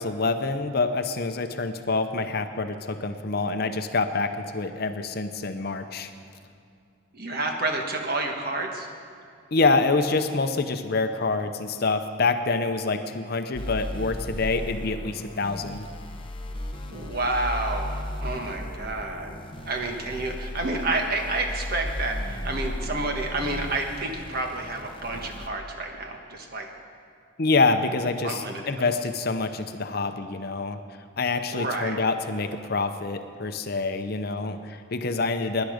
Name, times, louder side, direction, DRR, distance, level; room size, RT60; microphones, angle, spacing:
voice 1, 0.0-6.1 9.5-15.8 27.4-30.8 31.2-35.6, left 3 dB, 50° left, 8 dB, 0.7 m, -26 dB
voice 2, 7.1-8.9 16.9-19.4 19.6-26.7 28.2-28.9 31.5-32.0, right 2 dB, 45° right, 3 dB, 1.4 m, -29 dB
sound 1, 13.5-25.5, left 1 dB, 25° left, 1.0 m, -35 dB
18.0 x 10.5 x 5.1 m, 2.4 s
head